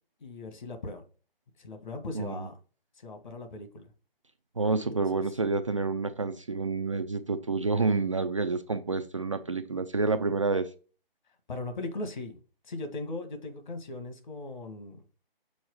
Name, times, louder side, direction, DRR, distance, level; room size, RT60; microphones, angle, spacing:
voice 1, 0.2-1.0 1.6-2.5 3.0-3.9 4.9-5.2 11.5-12.4 12.7-15.0, left 2 dB, 50° left, 1.7 m, -38 dB
voice 2, 2.1-2.5 4.6-10.7, right 3 dB, 35° right, 0.4 m, -28 dB
6.2 x 4.6 x 4.6 m
figure-of-eight pair, 145°, 29 cm